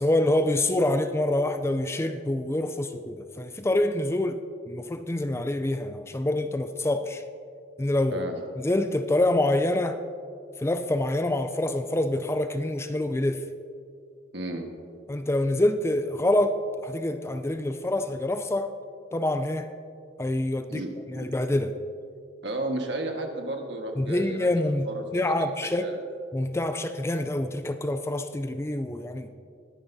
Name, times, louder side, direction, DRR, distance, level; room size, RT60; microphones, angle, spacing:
voice 1, 0.0-4.4 4.7-7.2 7.8-8.2 8.6-10.0 10.6-13.4 15.1-18.7 19.1-19.7 20.2-20.8 21.1-21.7 24.0-24.9 25.1-25.9 26.3-29.4, left 1 dB, 15° left, 9 dB, 0.4 m, -26 dB
voice 2, 8.1-8.4 14.3-14.7 20.7-21.3 22.4-26.0, right 1 dB, 65° right, 3 dB, 1.5 m, -33 dB
20.0 x 10.5 x 2.7 m, 2.3 s
head